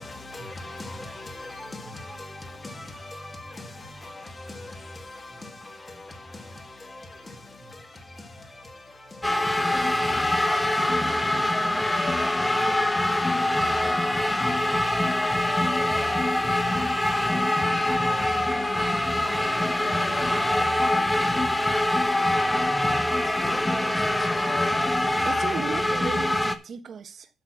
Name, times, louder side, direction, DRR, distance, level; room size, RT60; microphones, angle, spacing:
voice 1, 0.0-14.8 24.4-25.1, left 2 dB, 25° left, 2.5 m, -43 dB
sound 1, 9.2-26.6, left 1 dB, 10° left, 1.0 m, -24 dB
voice 2, 17.9-21.7 22.7-24.8, equal, 10° right, 2.4 m, -42 dB
voice 3, 25.2-27.3, right 6 dB, 55° right, 1.2 m, -35 dB
8.0 x 6.5 x 6.1 m
cardioid pair, 90°, 0 cm